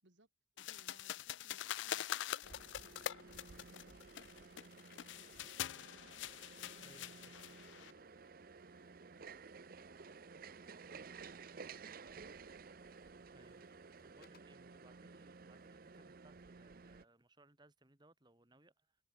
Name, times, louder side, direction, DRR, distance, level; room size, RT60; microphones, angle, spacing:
voice 1, 0.5-5.6 6.6-11.8 14.2-15.0, right 2 dB, 70° right, 2.6 m, -71 dB
sound 1, 0.6-7.9, left 11 dB, 70° left, 0.4 m, -44 dB
sound 2, 2.4-17.0, right 5 dB, 50° right, 0.6 m, -55 dB
Telephone, 4.8-14.6, left 4 dB, 50° left, 2.9 m, -75 dB
voice 2, 6.8-7.3 13.3-13.6 14.0-19.0, right 1 dB, 20° right, 1.8 m, -66 dB
head